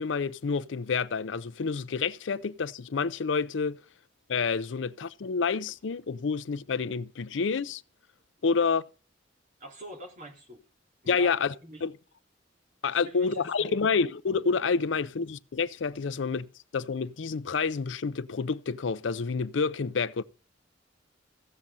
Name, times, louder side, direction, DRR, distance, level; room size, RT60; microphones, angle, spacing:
voice 1, 0.0-3.8 4.3-7.8 8.4-8.8 11.1-11.5 11.8-11.9 12.8-20.2, left 5 dB, 75° left, 0.5 m, -28 dB
voice 2, 9.6-10.6 11.0-11.3 11.6-11.8 12.9-13.8, right 1 dB, 45° right, 2.9 m, -45 dB
15.0 x 7.4 x 5.4 m
head